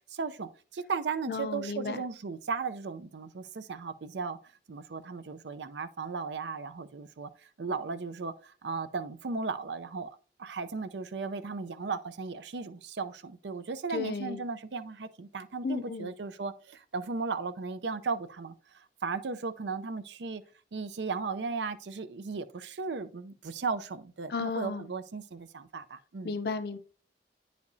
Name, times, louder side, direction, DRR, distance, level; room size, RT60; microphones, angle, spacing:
voice 1, 0.1-4.4 4.7-7.3 7.6-10.1 10.4-20.4 20.7-26.4, right 4 dB, 85° right, 0.6 m, -36 dB
voice 2, 1.3-2.0 13.9-14.4 15.6-16.1 24.3-24.9 26.2-26.8, left 4 dB, 60° left, 0.5 m, -33 dB
9.3 x 5.1 x 2.7 m
head